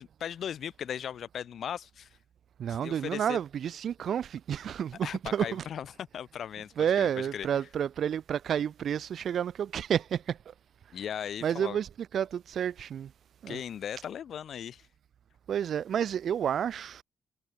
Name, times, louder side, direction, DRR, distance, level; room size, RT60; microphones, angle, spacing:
voice 1, 0.0-2.2 2.7-3.4 5.0-7.5 10.9-11.8 13.5-14.9, left 9 dB, 60° left, 7.9 m, -38 dB
voice 2, 2.6-5.6 6.8-10.4 11.4-13.1 13.4-13.6 15.5-17.0, right 9 dB, 60° right, 2.6 m, -30 dB
cardioid pair, 90°, 0 cm